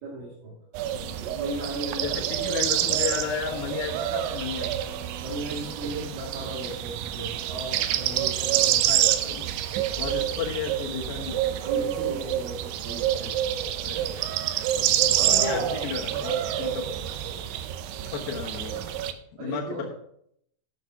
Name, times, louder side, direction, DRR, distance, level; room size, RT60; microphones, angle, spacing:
voice 1, 0.0-0.5 1.2-2.3 5.2-8.8 11.6-13.3 14.7-14.9 15.2-15.7 18.0-18.1 19.4-19.8, right 1 dB, 50° right, -5 dB, 3.3 m, -36 dB
sound 1, 0.7-19.1, right 11 dB, 80° right, 2.9 m, -27 dB
voice 2, 0.9-1.4 2.0-4.8 8.9-9.5 10.0-11.4 13.8-14.1 15.3-16.8 17.5-17.6 18.1-19.9, left 6 dB, 65° left, -3 dB, 2.5 m, -33 dB
10.5 x 6.8 x 5.8 m, 0.72 s
omnidirectional pair, 5.9 m